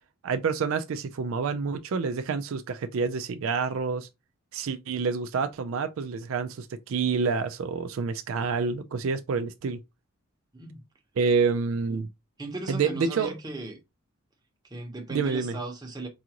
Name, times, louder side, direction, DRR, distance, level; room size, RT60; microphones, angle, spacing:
voice 1, 0.2-4.1 4.5-9.8 11.2-12.1 12.7-13.3 15.1-15.6, right 5 dB, 65° right, 0.4 m, -28 dB
voice 2, 12.4-13.8 14.7-16.1, right 2 dB, 20° right, 0.8 m, -37 dB
4.7 x 2.5 x 2.9 m
head